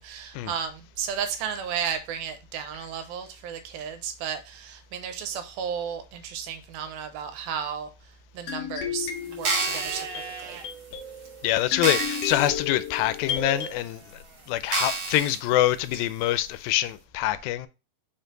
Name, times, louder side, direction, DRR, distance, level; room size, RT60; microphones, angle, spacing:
voice 1, 0.0-7.9 8.3-10.6, right 7 dB, 85° right, 2.7 m, -33 dB
sound 1, 8.5-13.7, left 6 dB, 70° left, 1.5 m, -34 dB
sound 2, 9.3-10.0 10.7-10.8 11.3-11.4 11.8-12.5 12.9-13.0 13.8-13.9 14.7-15.4 15.9-16.0, right 3 dB, 50° right, 1.5 m, -28 dB
Livestock farm animals working animals, 9.6-10.6 13.5-14.5, right 6 dB, 70° right, 1.6 m, -40 dB
voice 2, 11.4-14.0 14.5-17.7, left 14 dB, 85° left, 2.4 m, -25 dB
5.7 x 4.5 x 3.8 m
omnidirectional pair, 4.2 m